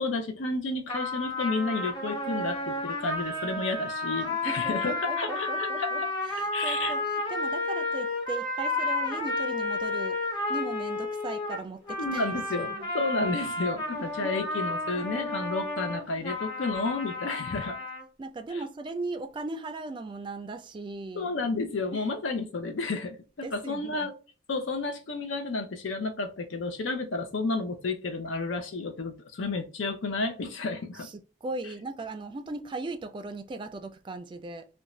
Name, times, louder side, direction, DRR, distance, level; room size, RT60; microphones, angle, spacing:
voice 1, 0.0-5.9 6.5-6.9 12.0-17.8 18.5-18.6 21.1-24.1 24.5-31.1, left 3 dB, 90° left, 0.6 m, -31 dB
sound 1, 0.9-18.0, left 2 dB, 25° left, 0.9 m, -32 dB
voice 2, 4.4-12.9 14.2-14.3 18.2-21.3 21.9-22.3 23.4-24.1 31.0-34.7, right 3 dB, 25° right, 0.3 m, -38 dB
2.6 x 2.2 x 2.9 m
head